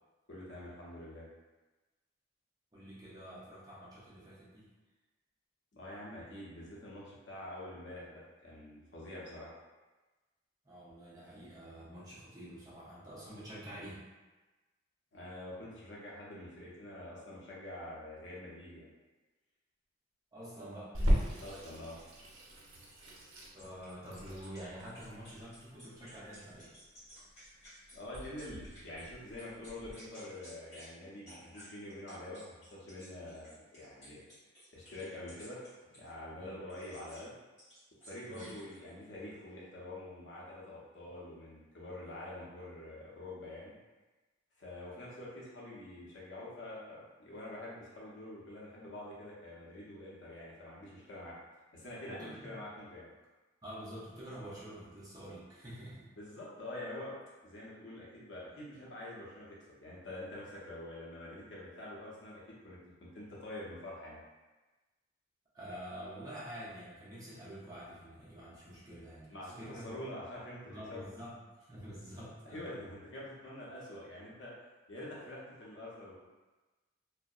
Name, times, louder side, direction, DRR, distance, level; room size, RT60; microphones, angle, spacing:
voice 1, 0.3-1.3 5.7-9.5 15.1-18.9 21.4-22.0 27.9-34.2 34.7-35.6 35.9-37.3 38.0-43.8 44.6-51.4 51.7-53.1 56.2-57.1 57.4-64.2 69.3-71.1 72.5-74.5 74.9-76.2, left 1 dB, 70° left, -6 dB, 0.7 m, -46 dB
voice 2, 2.7-4.7 10.6-14.0 20.3-21.0 23.5-26.7 36.3-36.6 38.3-38.5 52.0-52.6 53.6-56.1 65.5-70.0 70.6-71.4 71.7-72.6, equal, 20° right, -9 dB, 0.6 m, -47 dB
Water tap faucet / Sink (filling or washing), 20.9-29.9, equal, 85° right, 0.5 m, -37 dB
sound 1, 23.6-29.1 29.4-30.9 31.2-36.1 36.7-37.3 37.6-39.1, equal, 35° left, 0.9 m, -56 dB
2.6 x 2.0 x 2.3 m, 1.2 s
head